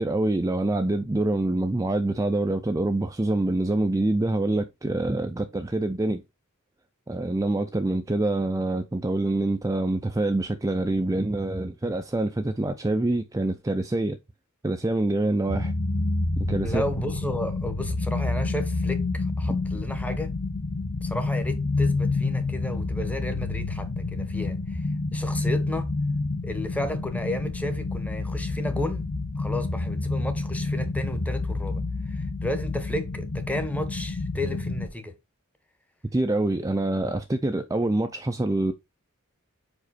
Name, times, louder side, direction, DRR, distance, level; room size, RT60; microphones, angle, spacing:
voice 1, 0.0-6.2 7.1-14.2 14.6-15.7 16.4-16.8 19.5-19.6 36.1-38.7, right 2 dB, 15° right, 0.4 m, -25 dB
sound 1, 15.5-34.9, left 3 dB, 45° left, 0.7 m, -28 dB
voice 2, 16.6-20.3 21.0-25.9 26.4-29.0 29.4-35.1, left 1 dB, 5° left, 0.9 m, -33 dB
5.1 x 5.0 x 4.1 m
head